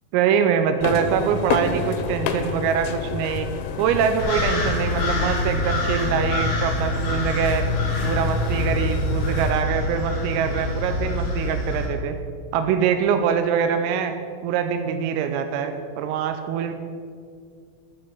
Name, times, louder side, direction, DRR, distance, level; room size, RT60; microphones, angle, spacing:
voice 1, 0.1-3.5 3.8-7.7 8.0-12.2 12.5-14.2 14.4-16.7, right 7 dB, 85° right, 7 dB, 3.3 m, -24 dB
sound 1, 0.8-9.6, left 6 dB, 85° left, 3.4 m, -30 dB
sound 2, 4.2-11.9, left 2 dB, 45° left, 3.6 m, -25 dB
13.0 x 7.4 x 7.0 m, 2.2 s
omnidirectional pair, 6.0 m